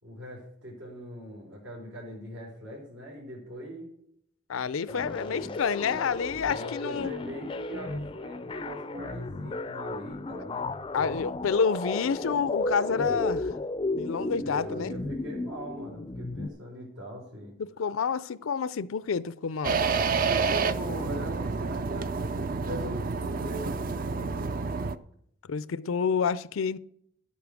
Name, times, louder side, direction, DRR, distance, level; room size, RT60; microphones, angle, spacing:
voice 1, 0.0-3.9 4.5-5.6 6.4-10.7 14.4-17.5 20.2-24.4, equal, 80° right, 3.9 m, -41 dB
voice 2, 4.5-7.1 10.9-13.5 13.9-14.9 17.6-19.8 25.5-26.8, left 6 dB, 85° left, 0.5 m, -28 dB
sound 1, 4.9-16.5, left 2 dB, 25° left, 0.4 m, -34 dB
sound 2, 19.6-25.0, right 4 dB, 45° right, 0.5 m, -29 dB
11.0 x 8.5 x 6.2 m
head